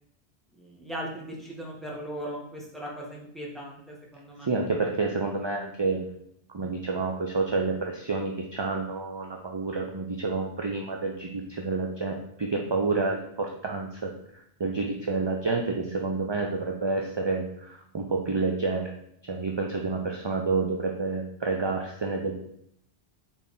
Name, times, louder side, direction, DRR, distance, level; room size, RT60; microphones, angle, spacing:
voice 1, 0.5-4.5, equal, ahead, -4 dB, 1.7 m, -38 dB
voice 2, 4.5-6.0 6.5-18.9 19.2-22.3, right 3 dB, 35° right, 1 dB, 0.5 m, -29 dB
4.5 x 4.4 x 5.3 m, 0.73 s
omnidirectional pair, 1.1 m